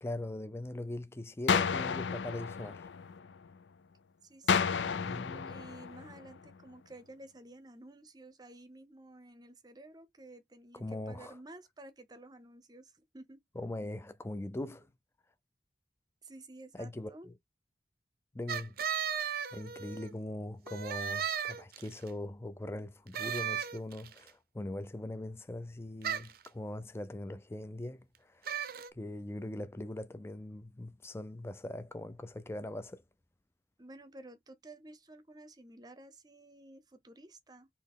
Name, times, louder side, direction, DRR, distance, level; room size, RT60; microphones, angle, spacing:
voice 1, 0.0-2.9 4.9-5.6 10.7-11.4 13.6-14.9 16.7-17.3 18.3-18.7 19.5-28.5 28.9-33.0, left 1 dB, 15° left, 0.4 m, -41 dB
sound 1, 1.5-3.5 4.5-6.5, left 6 dB, 90° left, 0.4 m, -32 dB
voice 2, 4.2-13.4 16.2-17.3 33.8-37.7, right 2 dB, 25° right, 0.7 m, -53 dB
sound 2, 18.5-20.1 20.7-22.1 23.1-24.2 26.0-26.5 28.5-28.9, right 8 dB, 55° right, 0.6 m, -35 dB
4.3 x 2.9 x 3.6 m
head